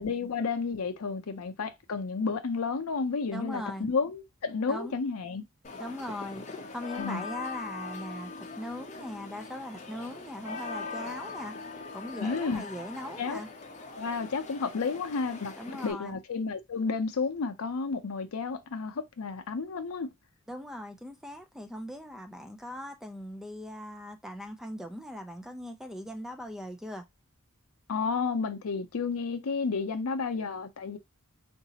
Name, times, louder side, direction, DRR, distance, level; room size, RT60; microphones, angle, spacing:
voice 1, 0.0-5.4 6.9-7.2 12.2-12.6 13.2-13.4 14.0-15.5 15.8-20.1 27.9-31.0, left 4 dB, 75° left, 0.5 m, -31 dB
voice 2, 3.3-3.9 4.7-5.0 5.8-11.6 11.9-13.5 15.6-16.2 20.5-27.0, left 1 dB, ahead, 0.3 m, -40 dB
sound 1, 5.6-15.9, left 4 dB, 35° left, 0.6 m, -41 dB
3.9 x 2.6 x 2.7 m
head